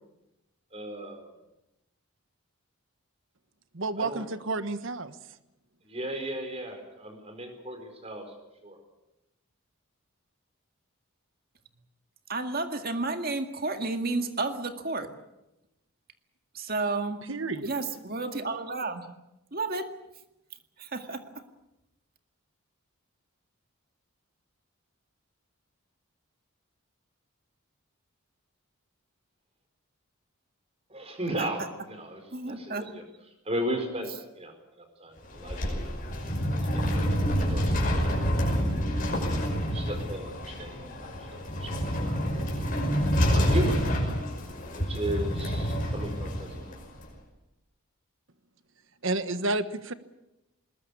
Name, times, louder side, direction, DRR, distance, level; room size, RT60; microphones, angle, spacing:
voice 1, 0.7-1.3 4.0-4.2 5.8-8.3 8.6-8.8 30.9-33.0 33.4-35.8 36.7-38.7 39.7-42.3 43.3-43.7 44.7-46.8, right 1 dB, 30° right, 6 dB, 4.7 m, -36 dB
voice 2, 3.7-5.2 17.3-17.7 49.0-49.9, right 2 dB, 60° right, 12 dB, 1.3 m, -30 dB
voice 3, 12.3-15.1 16.5-17.2 17.6-19.1 19.5-19.9 20.8-21.2 31.4-31.5 32.3-32.9, right 3 dB, 45° right, 6 dB, 2.0 m, -31 dB
sound 1, 35.2-47.1, equal, 40° left, 5.6 m, -28 dB
21.5 x 20.5 x 8.4 m, 0.93 s
head